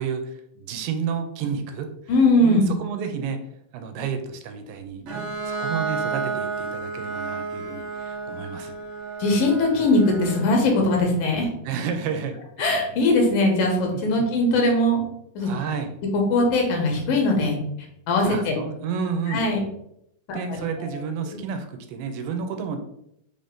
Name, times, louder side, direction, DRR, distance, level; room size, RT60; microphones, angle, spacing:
voice 1, 0.0-1.9 2.4-3.4 3.7-8.7 11.7-12.4 13.9-14.3 15.4-16.0 18.2-19.4 20.3-22.8, right 6 dB, 85° right, 6 dB, 2.2 m, -31 dB
voice 2, 2.1-2.7 9.2-11.5 12.6-15.0 15.4-15.5 16.1-17.6 18.1-18.4 19.3-19.6 20.3-20.9 21.3-21.4, left 2 dB, 80° left, 1 dB, 2.6 m, -20 dB
Bowed string instrument, 5.1-10.7, right 4 dB, 65° right, 1.4 m, -31 dB
5.7 x 2.6 x 3.5 m, 0.77 s
omnidirectional pair, 4.0 m